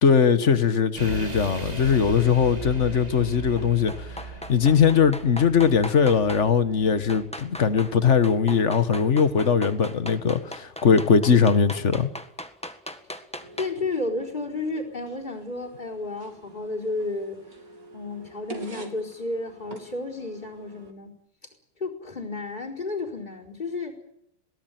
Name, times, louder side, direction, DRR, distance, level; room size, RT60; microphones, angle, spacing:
voice 1, 0.0-4.1 4.5-12.1, left 6 dB, 40° left, 1.4 m, -20 dB
sound 1, 1.0-8.0 8.2-8.7, right 3 dB, 20° right, 2.4 m, -38 dB
sound 2, 3.6-6.5 7.1-8.0 8.2-13.9 14.2-14.3, equal, 5° left, 1.3 m, -38 dB
sound 3, 13.4-20.9, right 3 dB, 40° right, 3.3 m, -45 dB
voice 2, 13.6-17.4 17.9-21.1 21.8-24.0, left 2 dB, 20° left, 4.8 m, -32 dB
22.0 x 18.0 x 9.4 m
omnidirectional pair, 2.4 m